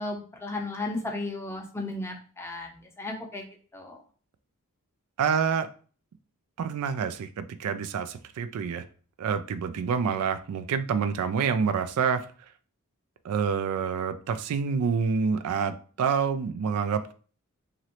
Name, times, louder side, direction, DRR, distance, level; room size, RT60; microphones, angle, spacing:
voice 1, 0.0-2.7 3.0-3.5 3.7-4.0, left 2 dB, 10° left, 1 dB, 0.6 m, -34 dB
voice 2, 5.2-5.7 6.6-8.8 9.2-12.2 13.2-17.1, right 6 dB, 80° right, 10 dB, 0.3 m, -27 dB
3.0 x 2.6 x 2.9 m, 0.40 s
head